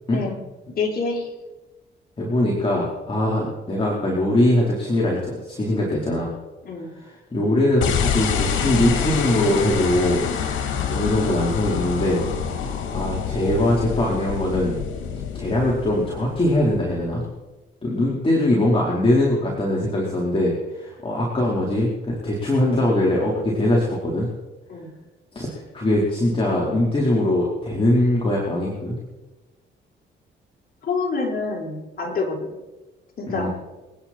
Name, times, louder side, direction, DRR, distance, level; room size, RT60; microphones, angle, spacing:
voice 1, 0.7-1.3 6.6-6.9 24.7-24.9 30.8-32.5 33.2-33.5, left 4 dB, 50° left, -1 dB, 5.0 m, -27 dB
voice 2, 2.2-6.3 6.9-10.3 10.9-12.2 12.9-14.7 15.3-17.2 17.8-21.9 22.2-24.3 25.3-29.0 33.3-33.5, left 1 dB, 25° left, -4 dB, 4.4 m, -21 dB
sound 1, 7.8-17.2, left 7 dB, 85° left, 2.2 m, -27 dB
27.5 x 10.0 x 4.5 m, 1.2 s
cardioid pair, 90°, 20 cm